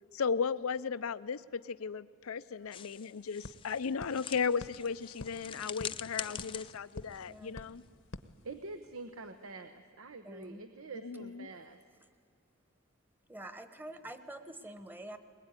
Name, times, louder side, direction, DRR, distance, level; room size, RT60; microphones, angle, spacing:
voice 1, 0.1-7.8 11.0-11.5, left 6 dB, 90° left, 14 dB, 0.5 m, -35 dB
sound 1, 2.3-2.4 2.6-9.1, left 2 dB, 65° left, 0.9 m, -51 dB
sound 2, 2.7-8.0, left 8 dB, 25° left, 0.5 m, -45 dB
voice 2, 7.2-7.6 10.2-10.6 13.3-15.2, right 1 dB, 10° right, 10 dB, 1.2 m, -47 dB
voice 3, 8.4-11.8, right 3 dB, 80° right, 9 dB, 1.0 m, -46 dB
21.5 x 20.5 x 9.7 m, 2.1 s
head